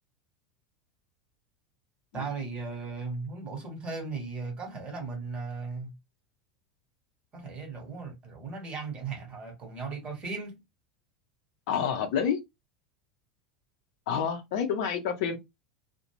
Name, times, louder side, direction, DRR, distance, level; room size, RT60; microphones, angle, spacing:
voice 1, 2.1-5.9 7.3-10.6, right 4 dB, 30° right, 1.1 m, -37 dB
voice 2, 11.7-12.4 14.1-15.4, left 7 dB, 55° left, 0.6 m, -28 dB
2.4 x 2.1 x 3.0 m
figure-of-eight pair, 80°, 4 cm